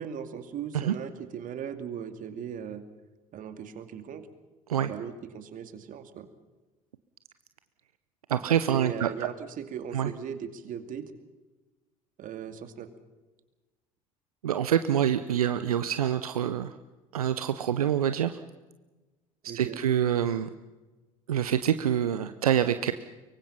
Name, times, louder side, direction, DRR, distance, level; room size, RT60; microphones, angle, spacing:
voice 1, 0.0-2.8 3.3-4.3 4.8-6.3 8.7-11.1 12.2-12.9 19.4-19.8, right 8 dB, 45° right, 9 dB, 2.5 m, -38 dB
voice 2, 8.3-9.1 9.9-10.1 14.4-16.7 17.1-18.4 19.4-20.5 21.3-22.9, right 10 dB, 80° right, 11 dB, 0.8 m, -26 dB
24.5 x 23.5 x 5.8 m, 1.2 s
figure-of-eight pair, 65°, 19 cm